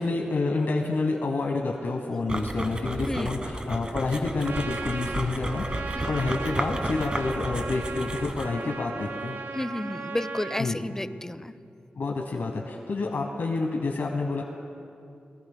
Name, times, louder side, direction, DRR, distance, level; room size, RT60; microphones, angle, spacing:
voice 1, 0.0-9.4 10.6-10.9 11.9-14.4, left 3 dB, 70° left, 1 dB, 1.1 m, -28 dB
sound 1, 2.3-8.6, right 1 dB, 25° right, 1.2 m, -33 dB
Trumpet, 4.4-10.7, right 4 dB, 90° right, 0.9 m, -37 dB
voice 2, 9.5-11.5, left 1 dB, 15° left, 14 dB, 0.5 m, -31 dB
23.0 x 18.0 x 2.2 m, 2.5 s
cardioid pair, 70°, 4 cm